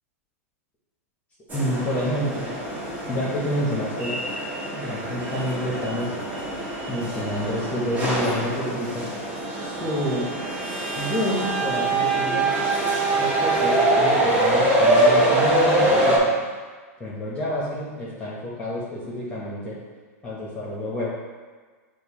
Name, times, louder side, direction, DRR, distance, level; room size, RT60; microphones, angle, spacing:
voice 1, 1.5-2.5 3.1-4.2 4.7-6.1 6.9-9.1 9.6-10.3 10.9-12.5 13.2-16.4 17.0-19.8 20.2-21.1, equal, 15° left, -7 dB, 1.1 m, -28 dB
sound 1, 1.5-16.2, right 2 dB, 20° right, 1.1 m, -24 dB
6.4 x 2.5 x 3.0 m, 1.5 s
hypercardioid pair, 110°, 8 cm